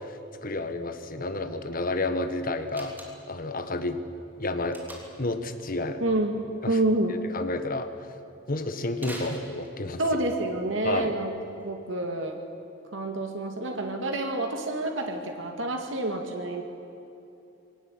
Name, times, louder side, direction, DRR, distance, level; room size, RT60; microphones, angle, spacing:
voice 1, 0.0-4.0 4.4-4.8 5.2-6.0 6.6-6.8 7.1-7.9 8.5-10.0 10.8-11.1, left 2 dB, 50° left, 8 dB, 1.6 m, -31 dB
Slam, 2.7-3.4 4.7-5.3 9.0-10.1, right 1 dB, 10° right, 3.3 m, -42 dB
voice 2, 6.0-7.2 10.0-12.4 12.9-16.6, right 2 dB, 85° right, 3 dB, 2.0 m, -28 dB
22.0 x 18.0 x 9.0 m, 2.7 s
head